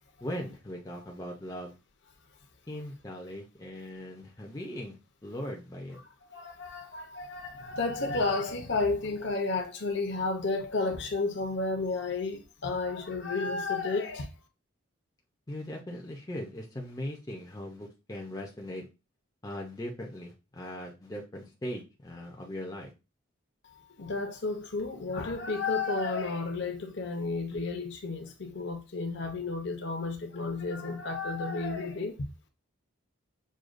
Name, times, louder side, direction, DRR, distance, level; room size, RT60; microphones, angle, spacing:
voice 1, 0.2-1.7 2.7-5.0 5.2-6.0 15.5-18.9 19.4-22.9, left 1 dB, 15° left, 0.5 m, -39 dB
voice 2, 6.3-14.3 24.0-32.1, left 3 dB, 55° left, 0.7 m, -32 dB
6.3 x 2.3 x 2.5 m
head